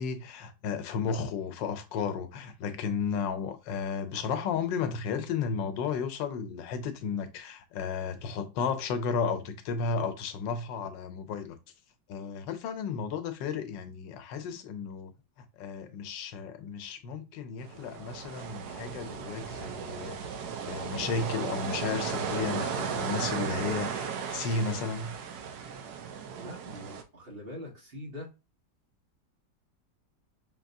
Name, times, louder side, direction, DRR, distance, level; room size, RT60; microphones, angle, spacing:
voice 1, 0.0-11.6 12.1-15.1 15.4-20.2 20.7-25.2, left 5 dB, 90° left, 1.4 m, -33 dB
sound 1, 17.6-27.0, right 6 dB, 70° right, 1.2 m, -36 dB
voice 2, 26.4-28.3, left 1 dB, 35° right, 1.5 m, -43 dB
5.8 x 2.9 x 2.6 m
omnidirectional pair, 1.9 m